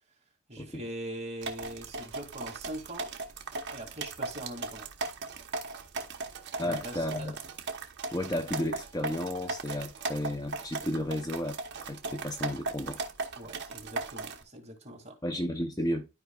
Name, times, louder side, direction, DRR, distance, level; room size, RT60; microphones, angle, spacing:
voice 1, 0.5-3.1 3.7-4.9 6.6-7.3 13.4-15.2, right 1 dB, 30° right, 2.4 m, -42 dB
sound 1, 1.4-14.4, right 3 dB, 55° right, 1.0 m, -38 dB
voice 2, 6.6-7.3 8.1-13.0 15.2-16.1, left 1 dB, 20° left, 0.7 m, -33 dB
12.5 x 4.8 x 2.4 m
head